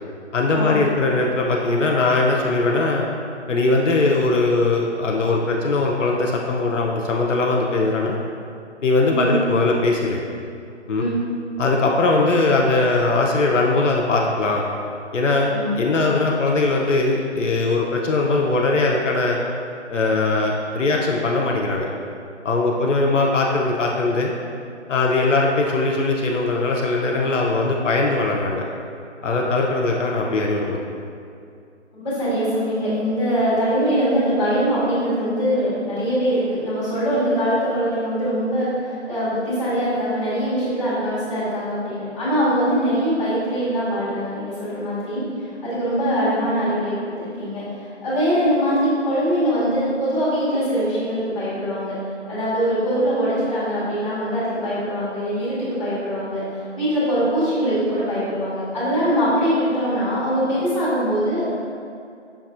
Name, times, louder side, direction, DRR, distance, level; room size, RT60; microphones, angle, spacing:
voice 1, 0.3-3.1 3.5-8.2 8.8-10.2 10.9-11.0 11.6-14.6 15.1-19.4 19.9-21.9 22.4-24.3 24.9-28.6 29.2-30.8, left 3 dB, 85° left, 0 dB, 0.5 m, -20 dB
voice 2, 31.9-51.9 52.3-61.5, equal, 25° left, -12 dB, 1.4 m, -22 dB
5.8 x 2.4 x 2.4 m, 2.4 s
figure-of-eight pair, 160°, 36 cm